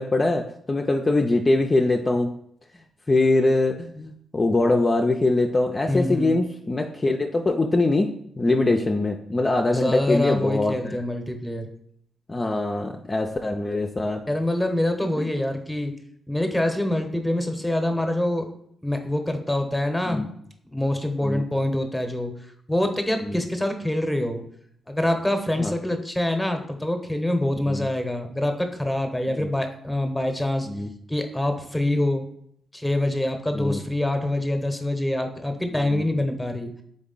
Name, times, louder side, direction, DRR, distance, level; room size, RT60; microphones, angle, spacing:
voice 1, 0.0-2.3 3.1-11.0 12.3-14.2 15.2-15.3 20.1-20.3 21.2-21.4 23.2-23.4 25.6-25.7 27.7-27.9 29.3-29.5 30.6-30.9 33.5-33.8 35.7-36.1, left 2 dB, 30° left, 2 dB, 0.4 m, -23 dB
voice 2, 5.9-6.4 9.7-11.7 14.3-15.9 16.3-18.5 18.8-20.2 20.7-22.3 22.7-24.4 24.9-30.7 31.1-32.3 32.7-36.7, left 1 dB, 5° left, 6 dB, 0.8 m, -25 dB
3.8 x 3.5 x 3.8 m, 0.69 s
supercardioid pair, 50°, 0 cm